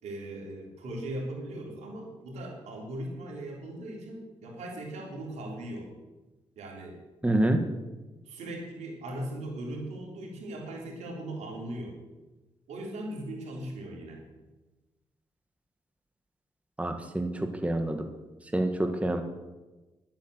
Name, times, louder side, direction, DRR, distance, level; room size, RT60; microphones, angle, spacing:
voice 1, 0.0-5.9 6.6-7.0 8.3-11.9 12.7-14.2, right 1 dB, 80° right, 0 dB, 3.7 m, -39 dB
voice 2, 7.2-7.6 16.8-18.1 18.5-19.2, right 1 dB, 10° right, 5 dB, 1.7 m, -27 dB
11.5 x 8.9 x 7.9 m, 1.1 s
supercardioid pair, 55°, 11 cm